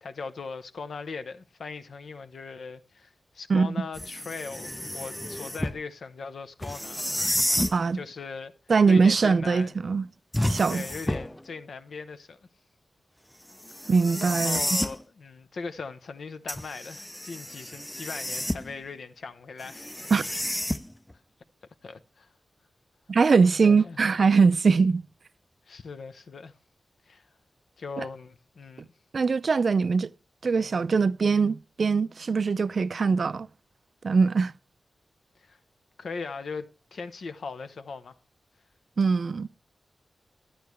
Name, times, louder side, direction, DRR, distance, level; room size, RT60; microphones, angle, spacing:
voice 1, 0.0-7.1 7.9-8.5 8.9-9.7 10.7-12.4 13.7-13.9 14.2-19.9 21.8-22.3 23.6-24.0 25.7-26.5 27.1-27.3 27.8-28.9 35.4-35.6 36.0-38.2, left 4 dB, 75° left, 0.7 m, -39 dB
sound 1, 3.9-5.8 6.6-7.8 10.3-11.4 13.6-15.0 16.5-18.8 19.6-21.1, left 1 dB, 10° left, 0.4 m, -30 dB
voice 2, 8.7-10.1 10.5-10.8 13.9-14.8 20.1-20.2 23.1-25.1 28.0-28.1 29.1-30.1 30.4-33.5 34.0-34.5 39.0-39.5, right 5 dB, 60° right, 0.4 m, -22 dB
10.0 x 9.4 x 3.1 m
cardioid pair, 75°, 0 cm